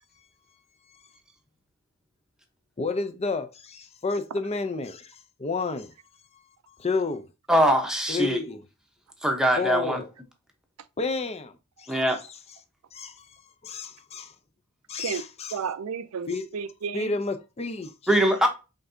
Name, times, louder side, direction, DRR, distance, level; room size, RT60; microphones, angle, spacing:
voice 1, 2.8-5.9 6.3-7.3 8.1-8.6 9.6-10.1 11.0-12.0 12.9-14.3 14.9-15.6 16.3-16.5 16.9-18.1, left 3 dB, 30° left, 0.5 m, -31 dB
voice 2, 7.5-8.4 9.2-10.0 11.9-12.2 18.1-18.5, right 1 dB, 5° right, 0.9 m, -22 dB
voice 3, 15.5-17.1, right 6 dB, 85° right, 0.5 m, -33 dB
5.2 x 3.5 x 2.6 m
head